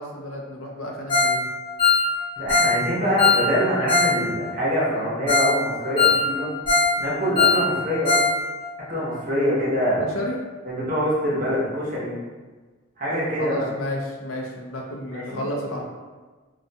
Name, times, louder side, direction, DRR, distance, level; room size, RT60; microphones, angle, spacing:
voice 1, 0.0-1.5 10.0-10.4 13.4-15.8, left 1 dB, 85° left, 0 dB, 0.5 m, -31 dB
Ringtone, 1.1-1.4 1.6-4.2 4.4-4.5 5.0-5.1 5.3-5.5 5.8-7.0 7.2-8.3 8.6-8.7 9.1-9.2, left 4 dB, 25° left, 0.6 m, -20 dB
voice 2, 2.4-6.5 7.0-8.2 8.9-10.1 10.6-12.1 13.0-13.6 15.1-15.4, equal, 45° right, -6 dB, 0.8 m, -24 dB
2.3 x 2.2 x 2.6 m, 1.3 s
head